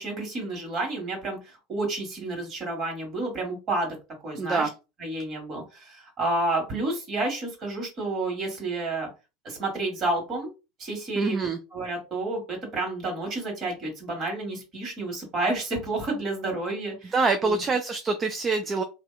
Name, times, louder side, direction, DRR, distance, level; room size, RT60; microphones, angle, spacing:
voice 1, 0.0-3.9 4.2-4.7 5.0-9.1 9.4-10.5 10.8-17.1 17.4-17.6, right 2 dB, 40° right, 2 dB, 1.4 m, -30 dB
voice 2, 4.4-4.7 11.2-11.6 17.1-18.8, right 4 dB, 25° right, 7 dB, 0.3 m, -25 dB
2.7 x 2.1 x 2.2 m, 0.28 s
hypercardioid pair, 80°, 0 cm